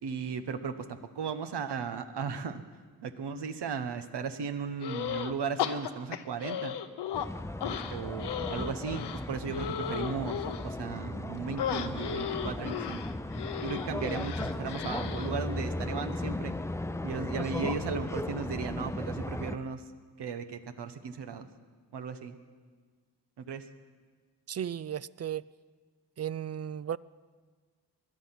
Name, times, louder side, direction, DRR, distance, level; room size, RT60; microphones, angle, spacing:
voice 1, 0.0-2.6 3.0-6.7 7.6-13.0 13.6-16.5 17.0-19.8 20.2-21.5 21.9-22.4 23.4-23.6, right 5 dB, 75° right, 9 dB, 1.2 m, -36 dB
sound 1, 4.8-5.3 5.6-7.3 7.6-10.7 11.6-15.3, left 9 dB, 80° left, 0.9 m, -35 dB
sound 2, 7.1-19.6, left 1 dB, 5° left, 0.6 m, -36 dB
voice 2, 24.5-25.4 26.2-27.0, right 9 dB, 40° right, 19 dB, 0.4 m, -35 dB
21.0 x 11.0 x 5.9 m, 1.5 s
cardioid pair, 55°, 41 cm